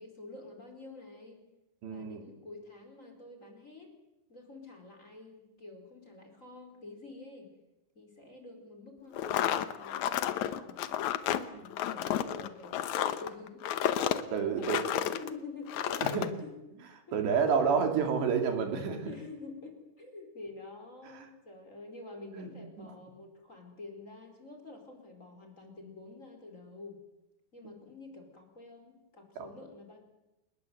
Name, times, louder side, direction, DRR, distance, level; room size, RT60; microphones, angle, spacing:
voice 1, 0.0-1.4 1.9-3.9 4.3-7.5 7.9-10.8 11.6-13.7 14.0-16.5 19.0-27.0 27.5-30.0, left 3 dB, 20° left, 3 dB, 4.5 m, -47 dB
voice 2, 1.8-2.2 11.5-11.6 14.3-14.8 16.1-16.3 17.1-19.1 21.1-21.3 22.3-22.9 29.4-29.5, right 6 dB, 85° right, 5 dB, 5.3 m, -30 dB
sound 1, 9.1-15.3 15.7-16.3, left 11 dB, 80° left, 1.7 m, -31 dB
28.0 x 20.5 x 8.1 m, 0.97 s
omnidirectional pair, 4.9 m